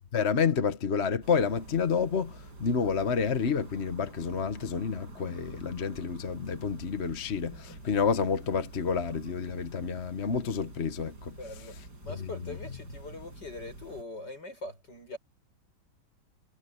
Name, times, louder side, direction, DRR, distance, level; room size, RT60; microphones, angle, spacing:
voice 1, 0.1-11.3 12.1-12.3, left 6 dB, 40° left, 1.3 m, -29 dB
sound 1, 1.2-14.0, right 2 dB, 55° right, 7.0 m, -47 dB
voice 2, 11.4-11.8 12.0-15.2, left 2 dB, 60° left, 8.0 m, -42 dB
omnidirectional pair, 2.1 m